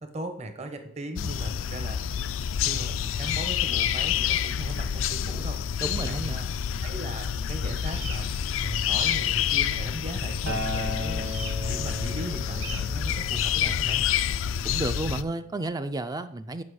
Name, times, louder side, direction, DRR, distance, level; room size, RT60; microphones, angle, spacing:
voice 1, 0.0-2.0 2.6-6.5 6.8-8.3 8.6-14.0, right 1 dB, 35° right, 6 dB, 0.9 m, -37 dB
sound 1, 1.2-15.2, left 9 dB, 85° left, 0.4 m, -28 dB
voice 2, 5.8-6.4 14.6-16.6, right 2 dB, 20° right, 10 dB, 0.3 m, -31 dB
sound 2, 7.8-8.2 8.7-9.2 11.2-11.5 12.5-12.8, right 4 dB, 85° right, 1.5 m, -38 dB
Acoustic guitar, 10.5-14.8 15.6-15.7, equal, 65° right, 1.3 m, -37 dB
8.6 x 5.4 x 4.8 m, 0.68 s
head